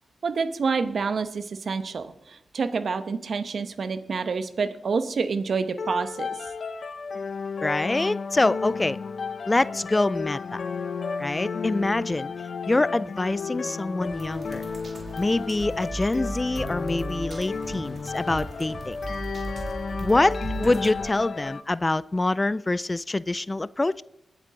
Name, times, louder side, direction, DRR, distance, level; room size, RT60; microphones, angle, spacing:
voice 1, 0.2-6.3, right 5 dB, 70° right, 10 dB, 0.9 m, -28 dB
sound 1, 5.8-21.6, left 5 dB, 65° left, 0.7 m, -33 dB
voice 2, 7.6-9.0 9.5-10.6 11.2-12.3 12.7-14.6 15.2-19.0 20.0-24.0, left 2 dB, 30° left, 20 dB, 0.3 m, -25 dB
sound 2, 14.0-21.1, right 2 dB, 55° right, 2.3 m, -37 dB
20.0 x 8.3 x 3.8 m, 0.81 s
cardioid pair, 50°, 0 cm